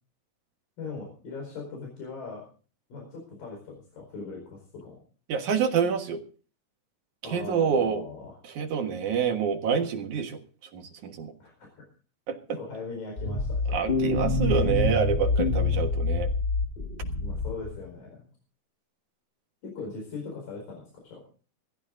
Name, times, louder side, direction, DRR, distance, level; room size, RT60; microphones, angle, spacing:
voice 1, 0.8-2.4 2.9-5.0 7.2-8.4 11.4-11.9 12.6-13.8 17.2-18.3 19.6-21.2, left 4 dB, 90° left, 0 dB, 6.4 m, -40 dB
voice 2, 5.3-6.2 7.2-8.0 8.5-10.4 10.7-11.3 12.3-12.6 13.7-16.3, right 6 dB, 65° right, 4 dB, 2.8 m, -27 dB
sound 1, 13.2-17.8, left 3 dB, 60° left, 0.5 m, -26 dB
19.0 x 14.5 x 3.8 m, 0.39 s
omnidirectional pair, 3.9 m